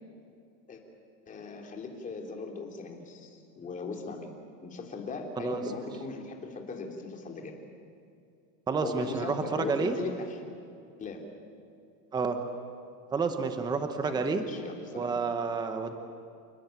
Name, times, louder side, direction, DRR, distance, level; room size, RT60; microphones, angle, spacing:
voice 1, 1.3-4.4 4.6-7.5 8.8-10.4 11.0-11.3 14.0-15.2, left 3 dB, 15° left, 2 dB, 3.0 m, -39 dB
voice 2, 5.4-5.7 8.7-10.0 12.1-12.4 13.1-14.4 14.9-15.9, right 4 dB, 10° right, 7 dB, 1.0 m, -30 dB
29.0 x 19.0 x 9.1 m, 2.5 s
supercardioid pair, 170°, 46 cm